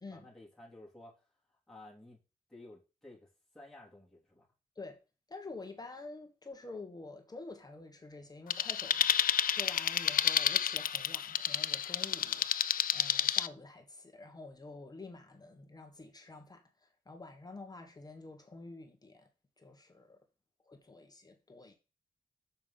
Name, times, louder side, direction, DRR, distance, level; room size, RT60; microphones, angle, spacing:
voice 1, 0.1-1.3 1.7-2.2 2.5-3.3 3.5-4.5, left 2 dB, 5° left, 2.9 m, -53 dB
voice 2, 5.3-12.7 12.9-19.3 19.6-20.2 20.7-21.8, left 3 dB, 25° left, 1.3 m, -49 dB
sound 1, 8.5-13.5, left 9 dB, 80° left, 0.4 m, -30 dB
6.9 x 5.3 x 5.7 m
wide cardioid pair, 125°, 14 cm